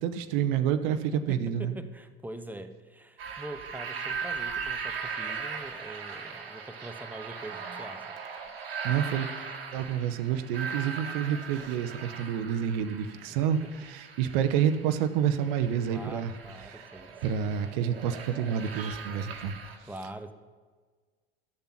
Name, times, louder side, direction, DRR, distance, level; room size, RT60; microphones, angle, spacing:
voice 1, 0.0-1.7 8.8-9.3 9.7-16.3 16.7-16.9 17.2-19.5, right 9 dB, 60° right, 10 dB, 0.8 m, -28 dB
voice 2, 1.1-8.1 13.4-13.5 15.9-17.2 19.8-20.3, right 1 dB, 5° right, 9 dB, 0.8 m, -43 dB
sound 1, 3.2-19.8, right 5 dB, 75° right, 1.3 m, -39 dB
12.5 x 6.9 x 5.8 m, 1.4 s
figure-of-eight pair, 70°, 29 cm